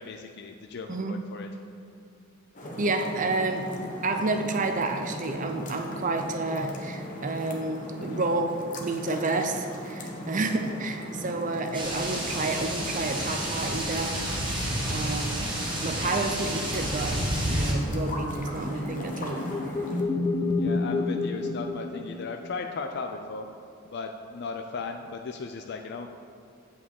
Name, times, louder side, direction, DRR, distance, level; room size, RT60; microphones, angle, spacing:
voice 1, 0.0-1.5 8.0-8.2 11.1-11.3 14.8-15.0 16.2-16.3 20.5-23.5 23.9-26.2, left 4 dB, 55° left, 5 dB, 0.4 m, -37 dB
voice 2, 0.9-1.2 2.8-3.7 4.0-8.5 8.8-14.2 14.5-15.3 15.8-17.2 17.5-19.4, right 2 dB, 40° right, 5 dB, 0.6 m, -30 dB
sound 1, 2.5-20.0, equal, 40° left, 1.1 m, -39 dB
sound 2, 11.7-17.7, right 1 dB, 25° right, 1.7 m, -30 dB
sound 3, 18.5-22.6, left 3 dB, 25° left, 0.7 m, -29 dB
8.3 x 4.7 x 7.0 m, 2.7 s
head